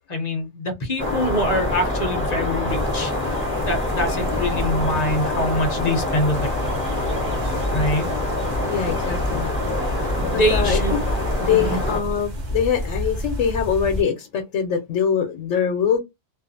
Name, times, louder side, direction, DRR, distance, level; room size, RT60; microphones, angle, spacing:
voice 1, 0.1-6.5 7.7-8.1 10.2-11.0 11.5-11.8, left 1 dB, 45° left, 0.6 m, -24 dB
sound 1, 1.0-12.0, left 1 dB, 10° right, 1.1 m, -25 dB
sound 2, 2.7-14.0, equal, 40° right, 0.8 m, -31 dB
sound 3, 6.4-11.9, left 1 dB, 70° right, 0.9 m, -35 dB
voice 2, 8.7-9.5 10.5-11.0 11.4-16.0, left 8 dB, 80° left, 0.9 m, -23 dB
2.5 x 2.4 x 2.5 m
omnidirectional pair, 1.3 m